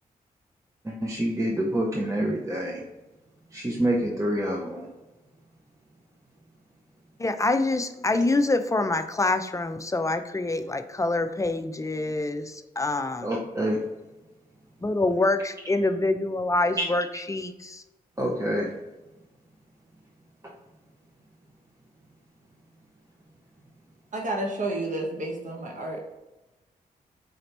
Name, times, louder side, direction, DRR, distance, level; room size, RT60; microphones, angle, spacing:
voice 1, 0.8-2.8 3.5-4.9 13.2-13.8 16.8-16.9 18.2-18.7 20.4-20.5, right 1 dB, 20° right, -1 dB, 0.9 m, -27 dB
voice 2, 7.2-13.3 14.8-17.8, left 2 dB, 20° left, 8 dB, 0.5 m, -26 dB
voice 3, 24.1-26.0, right 2 dB, 55° right, 0 dB, 0.9 m, -30 dB
5.0 x 2.8 x 3.3 m, 1.0 s
cardioid pair, 50°, 16 cm